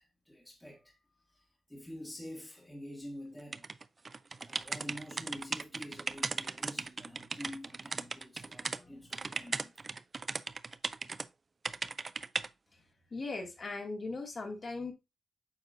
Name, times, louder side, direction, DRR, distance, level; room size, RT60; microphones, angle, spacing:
voice 1, 0.0-3.7 4.4-9.8, equal, 5° left, 1.5 m, -47 dB
sound 1, 3.5-8.8 9.1-11.3 11.6-12.5, right 4 dB, 30° right, 0.3 m, -37 dB
voice 2, 13.1-14.9, left 3 dB, 35° left, 2.0 m, -39 dB
9.0 x 6.3 x 2.6 m
wide cardioid pair, 175°, 0 cm